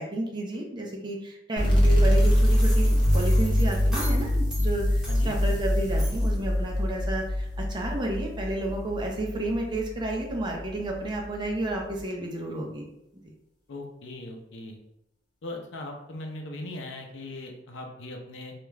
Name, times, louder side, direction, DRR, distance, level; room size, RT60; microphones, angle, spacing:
voice 1, 0.0-12.8 13.2-13.3, right 1 dB, 25° right, 0 dB, 0.5 m, -31 dB
sound 1, 1.6-8.8, equal, 25° left, 0.6 m, -24 dB
sound 2, 2.1-4.7 5.0-5.6 6.0-6.4, equal, 5° right, 0.8 m, -40 dB
sound 3, 3.0-12.0, left 1 dB, 85° right, 0.4 m, -30 dB
voice 2, 5.1-5.4 13.7-14.8 15.4-18.5, left 2 dB, 75° left, 2 dB, 0.5 m, -39 dB
2.3 x 2.1 x 3.2 m, 0.86 s
head